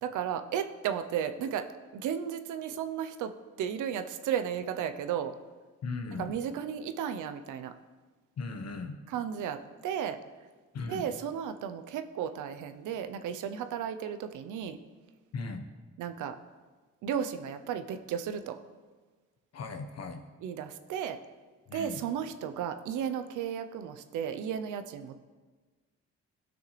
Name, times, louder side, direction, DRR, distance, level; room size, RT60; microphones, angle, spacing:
voice 1, 0.0-3.3 3.6-5.4 6.2-7.7 9.1-10.2 10.9-14.8 16.0-16.4 17.0-18.6 20.4-21.2 21.7-25.1, right 8 dB, 85° right, 9 dB, 0.7 m, -34 dB
voice 2, 5.8-6.3 8.4-9.0 10.7-11.0 15.3-15.6 19.5-20.2 21.7-22.0, left 3 dB, 55° left, 6 dB, 1.1 m, -37 dB
15.5 x 6.3 x 3.3 m, 1.4 s
cardioid pair, 90°, 30 cm